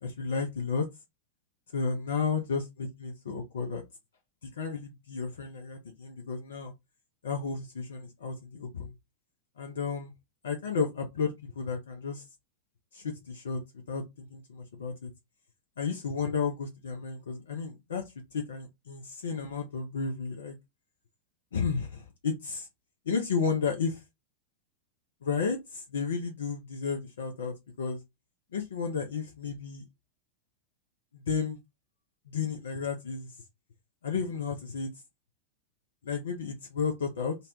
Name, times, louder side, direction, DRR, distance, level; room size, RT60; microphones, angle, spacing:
voice 1, 0.0-0.9 1.7-3.8 4.6-6.7 7.2-8.9 9.6-10.1 10.4-12.2 12.9-13.6 13.9-15.1 15.8-18.0 18.3-20.5 21.5-22.7 23.1-23.9 25.2-28.0 28.5-29.8 31.1-31.6 32.3-33.3 34.0-34.9 36.0-37.4, left 5 dB, 65° left, 0.5 m, -32 dB
3.9 x 2.1 x 2.4 m
figure-of-eight pair, 90°, 0 cm